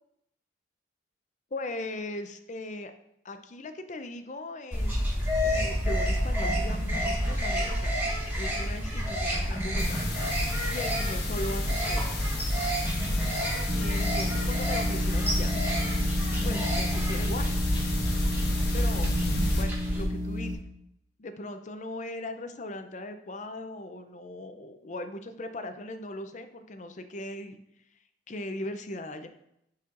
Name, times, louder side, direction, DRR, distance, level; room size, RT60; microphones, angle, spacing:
voice 1, 1.5-2.9 3.2-5.0 5.4-8.0 8.3-10.0 10.7-12.4 13.7-15.6 16.4-17.6 18.7-19.1 19.5-20.5 21.2-27.6 28.3-29.3, left 1 dB, 40° left, 8 dB, 0.5 m, -38 dB
sound 1, 4.7-20.0, equal, 10° right, 1.4 m, -30 dB
sound 2, 9.8-19.6, left 1 dB, 60° left, 1.1 m, -30 dB
sound 3, 13.7-20.5, left 1 dB, 55° right, 1.7 m, -33 dB
10.0 x 4.3 x 2.5 m, 0.79 s
head